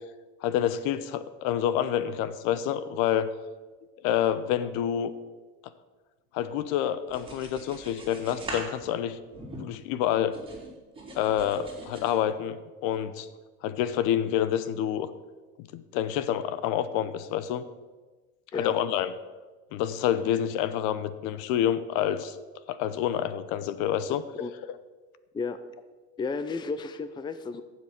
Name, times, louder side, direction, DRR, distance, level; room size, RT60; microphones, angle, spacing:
voice 1, 0.4-3.3 4.0-5.1 6.3-9.2 9.6-10.4 11.1-13.3 13.6-15.1 15.7-17.6 18.6-19.1 19.7-22.4 22.7-24.5, left 10 dB, 60° left, 14 dB, 0.9 m, -28 dB
sound 1, 7.1-9.9 10.3-12.1, right 2 dB, 15° right, 3.9 m, -42 dB
voice 2, 26.2-27.6, left 4 dB, 15° left, 11 dB, 0.6 m, -32 dB
15.0 x 7.6 x 6.0 m, 1.3 s
supercardioid pair, 115°, 35 cm